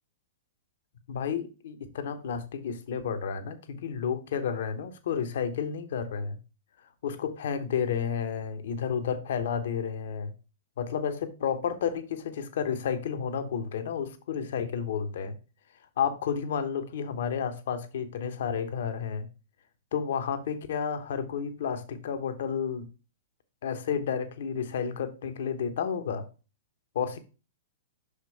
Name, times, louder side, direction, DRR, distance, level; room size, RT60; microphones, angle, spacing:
voice 1, 1.1-6.4 7.0-10.3 10.8-15.4 16.0-19.3 19.9-22.9 23.6-26.3 26.9-27.2, left 7 dB, 60° left, 1.0 m, -31 dB
6.1 x 5.1 x 4.1 m
figure-of-eight pair, 105°, 0 cm